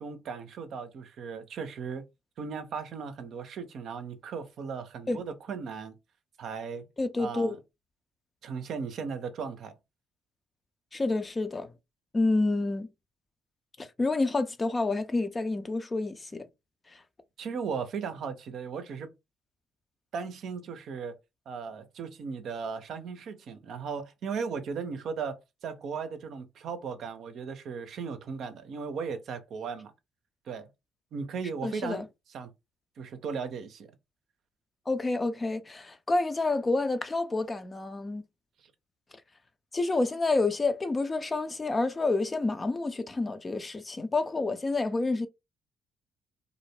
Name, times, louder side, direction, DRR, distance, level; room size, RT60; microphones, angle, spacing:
voice 1, 0.0-2.1 2.4-5.9 6.4-6.8 7.2-7.6 8.4-9.7 17.4-19.1 20.1-21.2 21.5-29.9 30.5-30.7 31.1-32.1 32.3-32.5 33.0-33.9, right 5 dB, 60° right, 0.5 m, -37 dB
voice 2, 7.0-7.6 10.9-11.7 12.1-12.9 13.8-16.5 16.9-17.0 31.6-32.0 34.9-38.2 39.7-45.3, left 3 dB, 30° left, 0.5 m, -28 dB
2.4 x 2.0 x 3.1 m
hypercardioid pair, 50°, 0 cm